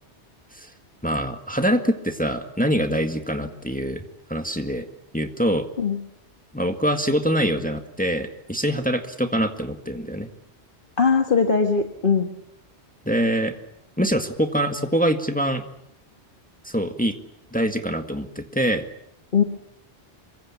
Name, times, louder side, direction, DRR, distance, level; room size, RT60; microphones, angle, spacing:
voice 1, 1.0-4.0 4.3-4.9 5.1-5.7 6.5-10.3 13.1-13.6 14.0-15.6 16.7-17.2 17.5-18.9, equal, 5° left, 6 dB, 1.8 m, -24 dB
voice 2, 11.0-12.3 19.3-19.4, left 5 dB, 45° left, 4 dB, 1.8 m, -20 dB
26.5 x 24.0 x 7.3 m, 0.75 s
omnidirectional pair, 1.2 m